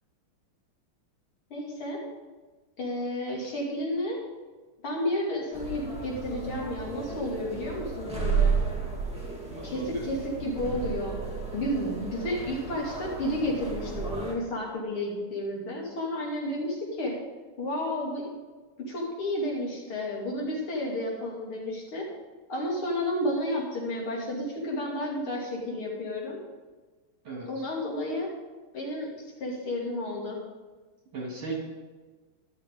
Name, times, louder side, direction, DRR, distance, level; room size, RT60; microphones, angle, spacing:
voice 1, 1.5-2.1 2.8-4.3 4.8-8.6 9.6-11.2 11.5-17.2 17.6-18.3 18.8-22.1 22.5-26.4 27.5-28.3 28.7-30.4, left 1 dB, 70° left, -2 dB, 3.5 m, -31 dB
sound 1, 5.5-14.3, right 5 dB, 5° right, 2.2 m, -33 dB
voice 2, 9.5-10.1 27.2-27.6 31.1-31.6, right 3 dB, 70° right, -2 dB, 3.8 m, -37 dB
13.0 x 12.0 x 3.8 m, 1.3 s
omnidirectional pair, 2.4 m